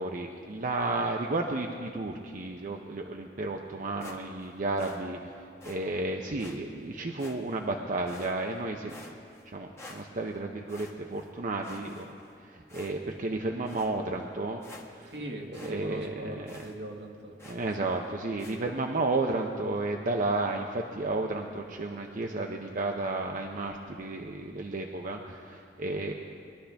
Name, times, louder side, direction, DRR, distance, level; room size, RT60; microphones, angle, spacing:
voice 1, 0.0-9.1 9.5-12.1 12.4-14.6 14.9-15.1 15.5-16.5 17.4-26.1, right 2 dB, 50° right, 2 dB, 0.6 m, -32 dB
sound 1, 4.0-4.5 4.8-5.0 5.6-5.8 6.4-6.6 7.2-7.7 8.1-8.6 8.9-9.5 9.8-10.3 10.7-11.3 11.6-12.3 12.7-13.2 13.7-13.9 14.3-14.4 14.6-15.2 15.5-15.8 16.0-16.1 16.5-16.7 17.4-17.7 18.4-18.6, left 2 dB, 15° left, 1.2 m, -49 dB
voice 2, 15.0-17.3 17.8-17.9, right 1 dB, 75° right, 1 dB, 1.6 m, -41 dB
21.0 x 11.5 x 3.4 m, 2.4 s
head